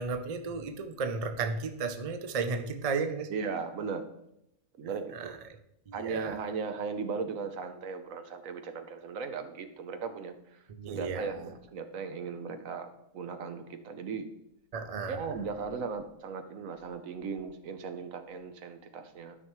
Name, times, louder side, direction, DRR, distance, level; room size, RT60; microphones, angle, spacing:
voice 1, 0.0-3.3 5.1-5.3 5.9-6.3 10.8-11.4 14.7-15.2, right 4 dB, 45° right, 0.5 m, -34 dB
voice 2, 3.3-4.0 4.8-5.4 5.9-14.3 15.1-19.4, right 5 dB, 75° right, 1.2 m, -37 dB
12.5 x 5.6 x 3.1 m
omnidirectional pair, 1.4 m